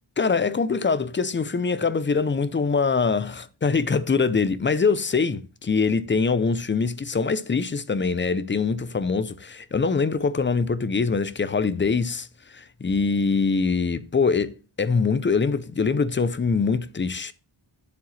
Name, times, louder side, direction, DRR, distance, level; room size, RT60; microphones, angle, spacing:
voice 1, 0.2-17.3, left 4 dB, 25° left, 0.4 m, -23 dB
8.8 x 7.6 x 3.1 m
wide cardioid pair, 180°, 47 cm